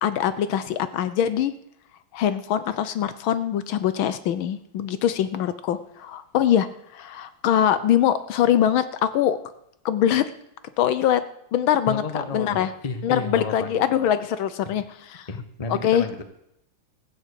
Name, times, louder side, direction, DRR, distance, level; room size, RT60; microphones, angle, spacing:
voice 1, 0.0-1.5 2.1-6.7 6.9-9.4 9.8-10.3 10.8-11.2 11.5-12.7 13.0-15.3 15.7-16.1, left 10 dB, 75° left, 13 dB, 1.5 m, -23 dB
voice 2, 11.9-13.7 15.3-16.2, left 4 dB, 25° left, 8 dB, 1.0 m, -31 dB
15.0 x 7.5 x 8.3 m, 0.79 s
omnidirectional pair, 2.3 m